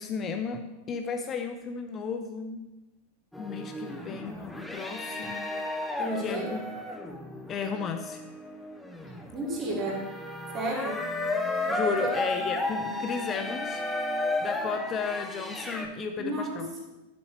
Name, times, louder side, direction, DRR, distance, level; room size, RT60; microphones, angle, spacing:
voice 1, 0.0-2.6 3.4-6.6 7.5-8.2 11.7-13.8 14.4-16.7, left 5 dB, 25° left, 6 dB, 0.6 m, -34 dB
sound 1, 3.3-15.9, left 2 dB, 5° left, 0.9 m, -33 dB
voice 2, 6.0-6.5 9.3-10.0 10.5-11.0 12.0-12.1 16.2-16.8, right 1 dB, 25° right, -1 dB, 2.3 m, -32 dB
10.5 x 8.3 x 3.2 m, 1.0 s
figure-of-eight pair, 90°, 0 cm